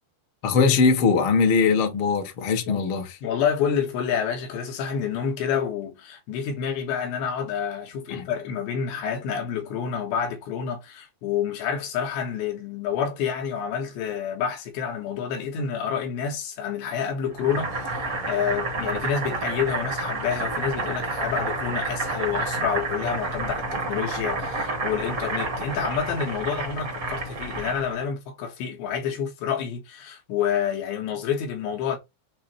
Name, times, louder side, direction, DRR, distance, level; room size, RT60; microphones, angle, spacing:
voice 1, 0.4-3.2 8.1-8.2, left 5 dB, 55° left, 1.4 m, -21 dB
voice 2, 3.2-32.0, left 7 dB, 75° left, 3.8 m, -28 dB
Boiling, 17.4-28.0, right 3 dB, 70° right, 0.8 m, -30 dB
8.6 x 2.9 x 4.5 m
omnidirectional pair, 5.3 m